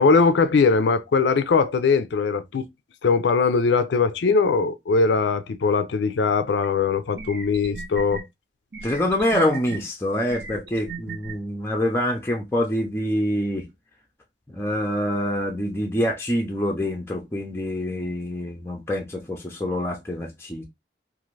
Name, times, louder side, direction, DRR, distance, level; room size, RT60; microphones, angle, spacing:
voice 1, 0.0-2.7 3.0-8.2, left 4 dB, 75° left, 0.4 m, -20 dB
sound 1, 6.6-6.7 7.1-8.2 8.7-9.8 10.3-11.3, right 4 dB, 60° right, 0.6 m, -36 dB
voice 2, 8.8-13.7 14.5-20.6, left 1 dB, 15° left, 0.5 m, -26 dB
2.5 x 2.5 x 3.1 m
head